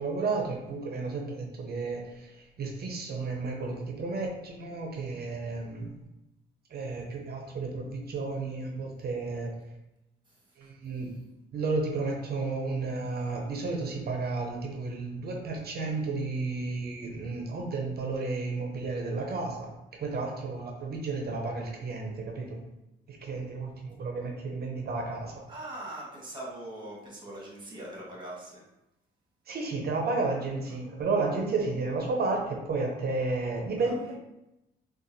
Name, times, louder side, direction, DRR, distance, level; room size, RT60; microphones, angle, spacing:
voice 1, 0.0-5.9 6.7-9.5 10.6-11.2 11.5-22.6 23.1-25.4 29.5-34.2, right 3 dB, 50° right, 1 dB, 0.7 m, -32 dB
voice 2, 25.5-28.6 33.8-33.9, right 1 dB, 25° right, -4 dB, 1.4 m, -41 dB
3.7 x 2.5 x 2.7 m, 0.91 s
cardioid pair, 90°, 20 cm